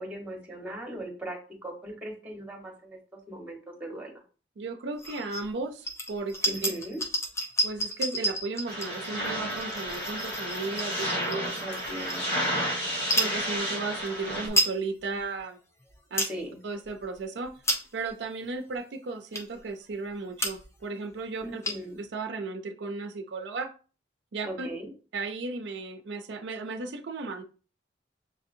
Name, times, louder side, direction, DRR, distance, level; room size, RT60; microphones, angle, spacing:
voice 1, 0.0-3.0 3.3-4.2 6.5-7.0 11.6-12.2 16.3-16.6 21.4-22.0 24.4-24.9, right 1 dB, 10° right, 0 dB, 1.2 m, -39 dB
voice 2, 4.6-6.7 7.6-11.6 12.3-12.5 13.1-15.6 16.1-16.3 16.6-17.5 17.9-21.6 22.0-23.7 24.3-24.7 25.1-27.4, right 3 dB, 80° right, 6 dB, 0.5 m, -35 dB
sound 1, 5.0-5.5 5.8-12.5 13.0-13.4 14.0-14.1 14.3-14.8 15.2-15.3 15.8-16.4 16.8-17.0 17.5-18.1 18.7-18.8 19.3-19.7 20.1-20.2 20.4-20.8 21.1-21.2 21.4-22.0, equal, 15° left, 0.7 m, -31 dB
sound 2, 8.7-14.5, equal, 65° left, 1.4 m, -31 dB
6.3 x 2.7 x 2.6 m, 0.36 s
head